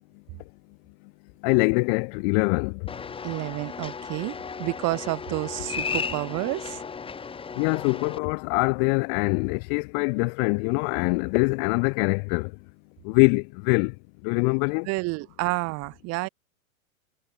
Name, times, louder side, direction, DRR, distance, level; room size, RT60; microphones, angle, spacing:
voice 1, 1.4-2.8 7.6-12.5 13.0-13.9 14.2-14.9, left 39 dB, 35° left, 0.8 m, -23 dB
sound 1, 2.9-8.2, left 5 dB, 10° left, 2.6 m, -34 dB
voice 2, 3.2-6.8 14.9-16.3, right 24 dB, 35° right, 1.7 m, -30 dB
hypercardioid pair, 125°, 42 cm